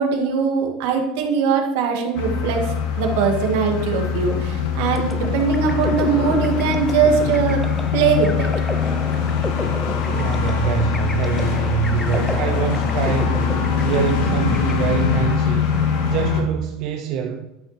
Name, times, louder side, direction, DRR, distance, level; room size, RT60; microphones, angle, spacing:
voice 1, 0.0-7.6 7.9-8.5, right 6 dB, 75° right, 1.8 m, -21 dB
sound 1, 2.1-16.4, left 6 dB, 70° left, 1.8 m, -22 dB
sound 2, 4.9-15.4, left 1 dB, 10° left, 0.6 m, -33 dB
voice 2, 10.0-13.5 13.8-15.7 16.1-17.5, right 8 dB, 50° right, 0.6 m, -25 dB
12.0 x 5.8 x 3.3 m
supercardioid pair, 150°, 0 cm